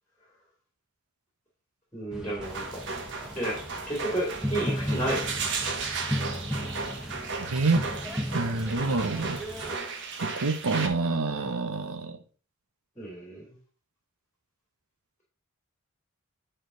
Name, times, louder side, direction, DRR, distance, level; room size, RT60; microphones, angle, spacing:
voice 1, 1.9-2.8 3.3-3.5 3.9-5.2 13.0-13.5, right 1 dB, 15° left, 2.6 m, -31 dB
sound 1, 2.1-9.8, equal, 5° right, 1.0 m, -35 dB
sound 2, 2.4-10.9, right 4 dB, 55° right, 1.0 m, -35 dB
voice 2, 7.4-7.9 8.3-9.4 10.2-12.2, right 3 dB, 85° right, 0.9 m, -27 dB
9.6 x 4.4 x 3.8 m
head